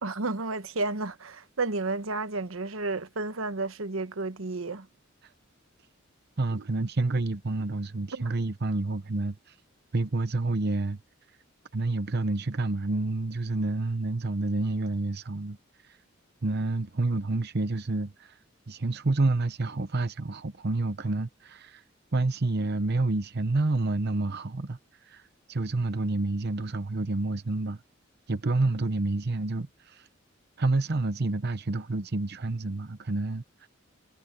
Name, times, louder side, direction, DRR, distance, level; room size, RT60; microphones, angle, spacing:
voice 1, 0.0-4.9 6.5-6.6 8.1-8.3, right 3 dB, 85° right, 1.2 m, -32 dB
voice 2, 6.4-9.5 9.9-11.0 11.7-15.6 16.4-18.3 18.7-21.8 22.1-24.8 25.0-25.2 25.5-27.8 28.3-30.1 30.6-33.7, right 2 dB, 55° right, 0.8 m, -28 dB
head